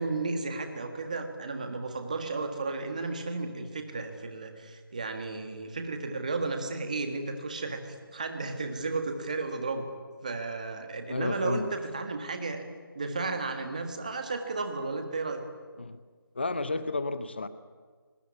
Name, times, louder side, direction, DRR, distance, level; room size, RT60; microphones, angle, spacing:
voice 1, 0.0-9.9 10.2-12.6 12.9-15.4, right 3 dB, 20° right, 6 dB, 1.7 m, -33 dB
voice 2, 11.1-11.7 15.8-16.0 16.3-17.5, left 2 dB, 30° left, 13 dB, 0.8 m, -31 dB
25.5 x 19.5 x 9.7 m, 1.5 s
figure-of-eight pair, 175°, 12 cm